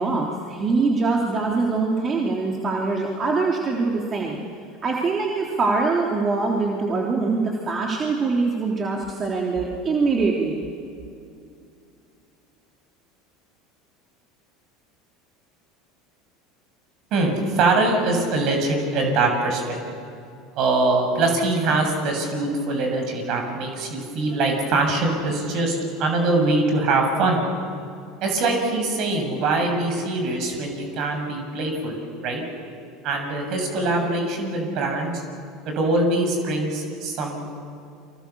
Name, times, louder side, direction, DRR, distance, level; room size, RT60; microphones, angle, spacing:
voice 1, 0.0-4.4 4.8-10.6, right 3 dB, 35° right, -1 dB, 3.4 m, -23 dB
voice 2, 17.1-19.8 20.6-27.4 28.2-32.0 32.2-32.4 33.0-35.2 35.7-37.4, right 2 dB, 55° right, 3 dB, 7.1 m, -23 dB
30.0 x 25.0 x 7.1 m, 2.5 s
hypercardioid pair, 75°, 0 cm